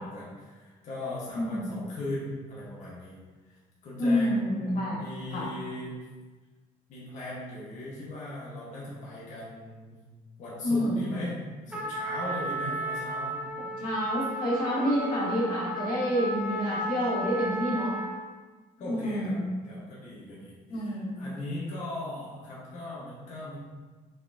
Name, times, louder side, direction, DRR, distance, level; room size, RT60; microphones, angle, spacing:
voice 1, 0.0-3.2 3.5-3.6 3.8-5.9 6.9-10.0 10.4-11.4 11.7-13.4 13.7-13.8 18.8-19.4 19.6-23.6, left 1 dB, 55° left, -7 dB, 1.4 m, -39 dB
voice 2, 1.3-1.7 4.0-5.0 5.3-5.5 10.6-11.0 13.6-18.0 18.8-19.4 20.7-21.2, equal, 70° left, -5 dB, 1.5 m, -28 dB
Trumpet, 11.7-18.3, right 1 dB, 10° right, 0.9 m, -34 dB
5.8 x 3.3 x 2.8 m, 1.3 s
cardioid pair, 110°, 15 cm